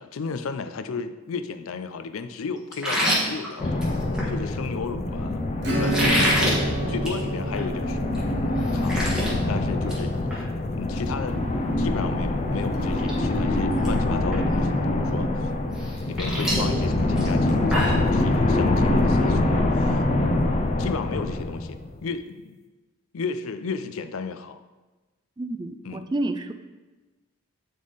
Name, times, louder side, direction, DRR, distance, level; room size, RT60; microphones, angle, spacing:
voice 1, 0.0-3.8 4.3-6.4 6.9-9.0 9.5-10.5 10.7-11.4 11.8-15.5 16.1-22.6 23.1-24.6 25.8-26.0, left 5 dB, 90° left, 11 dB, 0.5 m, -34 dB
sound 1, 2.7-4.3 5.8-6.6 7.0-7.2 7.5-7.6 8.1-8.2 8.5-9.3 9.7-10.0 10.3-10.4 12.3-12.4 12.8-13.1 13.4-13.9 14.3-14.4 15.8-18.1, equal, 5° right, 1.3 m, -26 dB
sound 2, 3.6-22.0, left 2 dB, 30° left, 0.5 m, -24 dB
Acoustic guitar / Strum, 5.6-11.8, right 2 dB, 50° right, 1.3 m, -31 dB
voice 2, 25.4-26.5, right 2 dB, 20° right, 9 dB, 0.3 m, -29 dB
9.4 x 3.7 x 4.0 m, 1.2 s
head